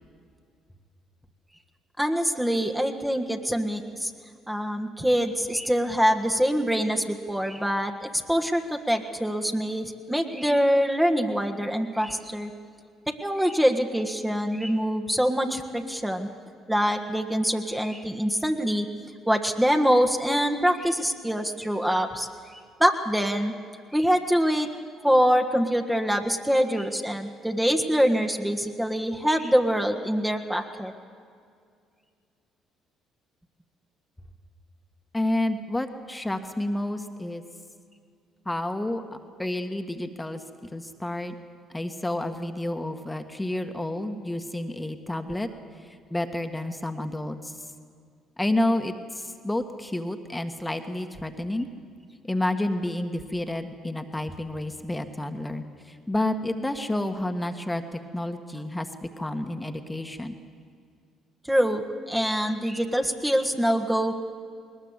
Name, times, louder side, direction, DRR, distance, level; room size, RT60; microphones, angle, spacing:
voice 1, 2.0-4.1 4.5-12.5 13.2-16.3 16.7-18.9 19.3-22.3 22.8-23.5 23.9-24.7 25.0-30.9 61.5-61.8 62.1-64.1, equal, 5° right, 4 dB, 1.6 m, -24 dB
voice 2, 35.1-37.4 38.4-39.0 39.4-40.4 40.7-41.3 41.7-45.5 45.8-47.6 48.4-51.7 52.3-60.3, left 1 dB, 10° left, 6 dB, 1.7 m, -30 dB
20.5 x 20.0 x 8.2 m, 2.2 s
hypercardioid pair, 55°, 0 cm